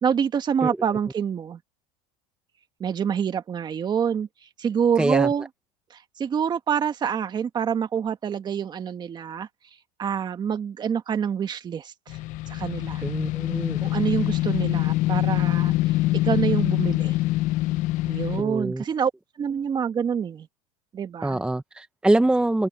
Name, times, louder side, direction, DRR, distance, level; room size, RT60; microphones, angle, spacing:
voice 1, 0.0-1.6 2.8-4.3 4.6-5.5 5.9-9.5 10.0-12.2 12.5-13.0 13.8-15.9 16.2-17.2 18.1-19.1 19.4-20.5 20.9-21.4, right 7 dB, 25° right, 1.7 m, -26 dB
voice 2, 5.0-5.3 13.0-13.8 18.4-18.8 21.2-22.7, right 2 dB, 5° right, 1.0 m, -24 dB
sound 1, 12.1-18.4, left 17 dB, 50° left, 0.8 m, -24 dB
open air
supercardioid pair, 130°, 16 cm